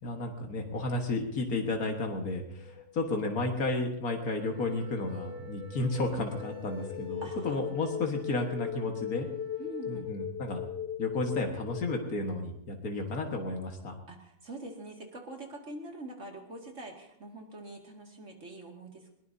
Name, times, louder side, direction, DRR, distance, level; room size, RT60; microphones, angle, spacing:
voice 1, 0.0-9.3 9.9-10.6 11.0-13.9, left 2 dB, 80° left, 2 dB, 2.0 m, -32 dB
sound 1, 2.5-12.2, left 8 dB, 35° left, 1.4 m, -40 dB
Wind instrument woodwind instrument, 4.4-10.2, left 3 dB, 80° right, 3.6 m, -57 dB
voice 2, 7.2-7.7 9.6-10.1 14.1-19.1, right 2 dB, 55° right, 1 dB, 2.6 m, -44 dB
21.5 x 19.5 x 2.8 m, 0.74 s
omnidirectional pair, 1.5 m